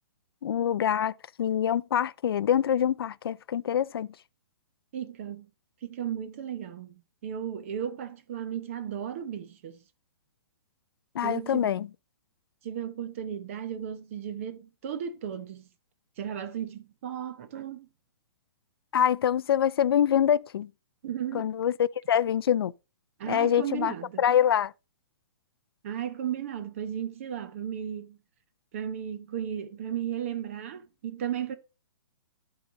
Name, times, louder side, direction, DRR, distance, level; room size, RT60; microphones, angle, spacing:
voice 1, 0.4-1.1 1.4-4.1 11.2-11.9 18.9-20.7 21.3-21.7 22.1-22.7 23.3-23.9 24.2-24.7, left 9 dB, 70° left, 0.4 m, -25 dB
voice 2, 4.9-5.5 5.8-9.8 11.2-11.7 12.6-15.6 16.2-17.9 21.0-21.5 23.2-24.2 25.8-28.2 28.7-31.5, right 9 dB, 35° right, 0.6 m, -35 dB
11.5 x 3.9 x 4.9 m
hypercardioid pair, 170°, 13 cm